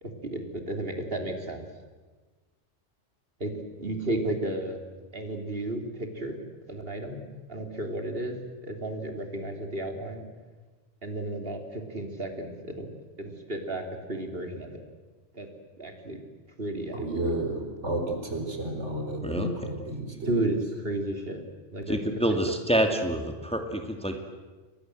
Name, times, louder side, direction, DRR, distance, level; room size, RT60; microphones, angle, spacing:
voice 1, 0.0-1.7 3.4-4.8 5.1-6.4 6.7-7.2 7.5-10.2 11.0-12.9 13.2-14.8 15.3-15.5 15.8-16.2 16.6-17.2 20.3-21.4 21.7-22.0 22.3-22.4, right 1 dB, 50° right, 4 dB, 3.7 m, -33 dB
voice 2, 16.9-20.5, right 1 dB, 70° right, 4 dB, 4.6 m, -32 dB
voice 3, 21.9-24.2, right 1 dB, 5° left, 4 dB, 2.4 m, -27 dB
30.0 x 23.5 x 7.9 m, 1.3 s
omnidirectional pair, 1.2 m